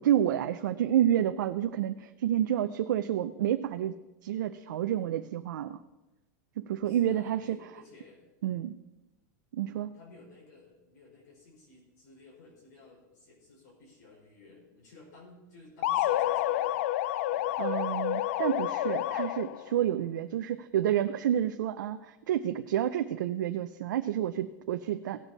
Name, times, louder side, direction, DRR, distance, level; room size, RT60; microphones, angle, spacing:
voice 1, 0.0-4.0 4.2-5.8 6.6-7.6 8.4-8.8 9.5-9.9 17.6-25.2, right 11 dB, 85° right, 8 dB, 0.5 m, -29 dB
voice 2, 6.8-8.3 9.9-16.8 17.3-17.6, left 3 dB, 70° left, -3 dB, 4.6 m, -55 dB
sound 1, 15.8-19.7, left 14 dB, 50° left, 0.3 m, -29 dB
17.5 x 7.1 x 4.1 m, 1.0 s
supercardioid pair, 175°, 10 cm